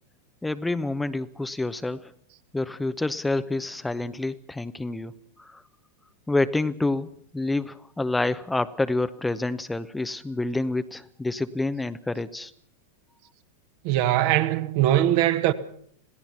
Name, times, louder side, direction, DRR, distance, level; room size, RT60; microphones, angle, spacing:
voice 1, 0.4-2.1 2.5-5.1 5.4-5.6 6.3-12.5, left 2 dB, 5° left, 0.8 m, -28 dB
voice 2, 13.8-15.5, right 13 dB, 45° right, 1.3 m, -21 dB
27.0 x 17.5 x 5.8 m
figure-of-eight pair, 90°, 0 cm